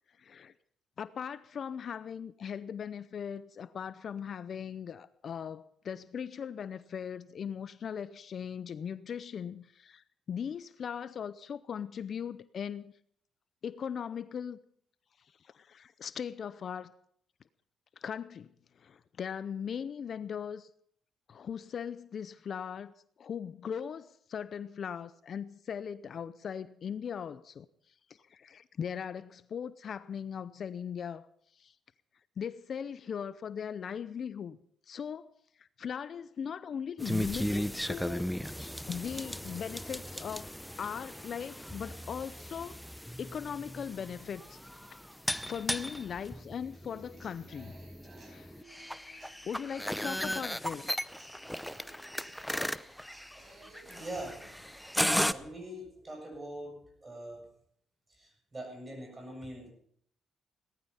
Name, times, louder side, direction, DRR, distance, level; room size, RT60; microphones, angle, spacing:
voice 1, 0.2-0.5 1.0-12.9 13.6-14.6 15.4-16.9 18.0-18.5 18.8-20.7 21.3-22.9 23.2-27.7 28.3-31.3 31.6-31.7 32.4-34.6 34.9-35.3 35.6-38.3 38.6-40.5 40.8-42.8 43.2-44.6 45.5-47.7 48.2-48.6 49.4-51.0, left 7 dB, 55° left, 0.6 m, -39 dB
sound 1, 37.0-55.3, equal, ahead, 0.6 m, -36 dB
sound 2, 42.2-54.8, left 2 dB, 20° left, 7.8 m, -63 dB
Human voice / Acoustic guitar, 46.7-54.7, right 2 dB, 40° right, 4.9 m, -59 dB
voice 2, 53.3-57.5 58.1-59.7, right 1 dB, 20° right, 7.4 m, -44 dB
18.0 x 12.5 x 5.7 m
cardioid pair, 90°, 0 cm